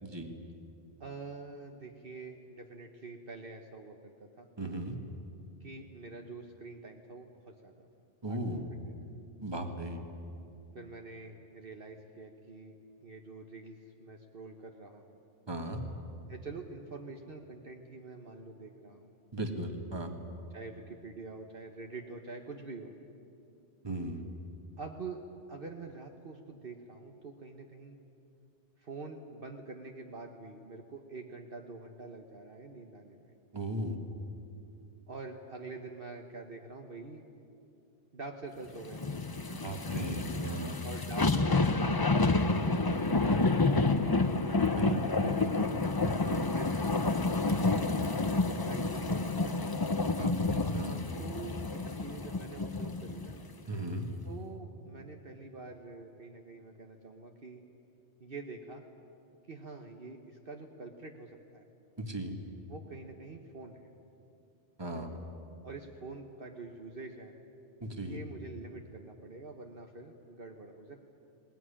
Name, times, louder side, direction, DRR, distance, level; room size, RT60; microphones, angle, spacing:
voice 1, 0.0-0.3 4.6-5.0 8.2-8.6 9.4-10.0 15.5-15.8 19.3-20.1 23.8-24.2 33.5-34.0 39.6-40.8 44.7-45.7 46.0-46.4 50.2-51.0 53.7-54.1 62.0-62.3 64.8-65.1 67.8-68.2, right 1 dB, 20° right, 4 dB, 1.9 m, -37 dB
voice 2, 1.0-4.5 5.6-7.9 8.3-9.0 10.7-15.2 16.3-19.2 20.5-22.9 24.8-25.2 25.5-28.0 28.8-33.3 35.1-37.2 38.1-39.3 40.8-43.7 44.8-45.8 46.5-46.8 47.0-49.7 51.2-53.4 54.2-57.6 58.2-58.8 59.5-61.6 62.7-63.9 65.6-67.3 68.0-71.0, right 3 dB, 50° right, 3 dB, 1.5 m, -46 dB
sound 1, 38.9-53.3 53.8-53.9, left 3 dB, 20° left, 0.7 m, -29 dB
20.5 x 19.0 x 10.0 m, 2.7 s
omnidirectional pair, 1.2 m